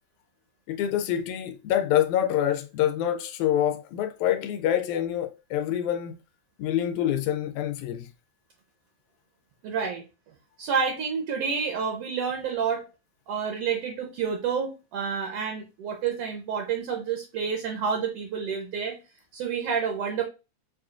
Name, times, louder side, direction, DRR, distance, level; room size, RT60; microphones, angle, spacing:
voice 1, 0.7-6.2 6.6-8.1, left 11 dB, 90° left, 2.0 m, -26 dB
voice 2, 9.6-10.0 10.6-12.9 13.3-19.0 19.3-20.2, right 6 dB, 70° right, 1.6 m, -29 dB
6.4 x 2.4 x 2.4 m
omnidirectional pair, 3.3 m